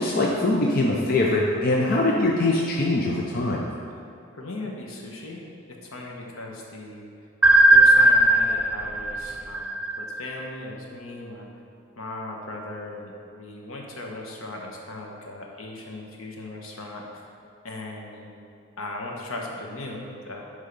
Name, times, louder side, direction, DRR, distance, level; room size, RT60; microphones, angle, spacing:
voice 1, 0.0-3.7, left 2 dB, 45° left, -2 dB, 0.6 m, -22 dB
voice 2, 4.3-7.1 7.7-11.5 12.0-17.2 17.6-18.3 18.8-20.4, left 2 dB, 85° left, 0 dB, 1.2 m, -38 dB
sound 1, 7.4-10.4, right 1 dB, 10° right, 0.3 m, -17 dB
10.0 x 3.7 x 5.4 m, 2.5 s
head